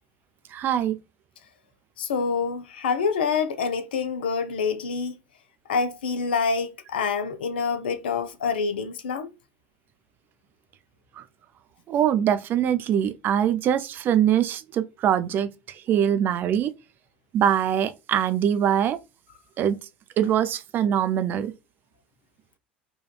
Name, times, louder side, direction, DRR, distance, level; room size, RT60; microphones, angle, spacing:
voice 1, 0.5-1.0 11.2-11.3 11.9-16.7 17.3-19.0 19.6-19.8 20.2-21.5, right 9 dB, 35° right, 0.3 m, -23 dB
voice 2, 2.0-5.2 5.7-9.3, left 5 dB, 65° left, 0.4 m, -26 dB
3.4 x 2.2 x 2.2 m
figure-of-eight pair, 70°, 6 cm